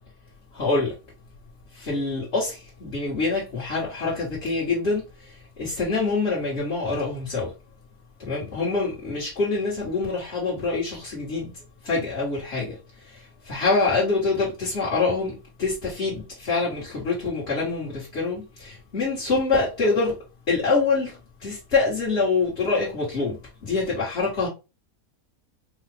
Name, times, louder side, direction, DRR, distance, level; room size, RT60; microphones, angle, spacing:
voice 1, 0.5-0.9 1.7-5.0 5.6-7.5 8.2-11.5 11.8-12.7 13.1-20.2 20.5-23.4 23.6-24.5, left 3 dB, 45° left, 1.6 m, -25 dB
4.6 x 2.4 x 3.3 m
omnidirectional pair, 1.7 m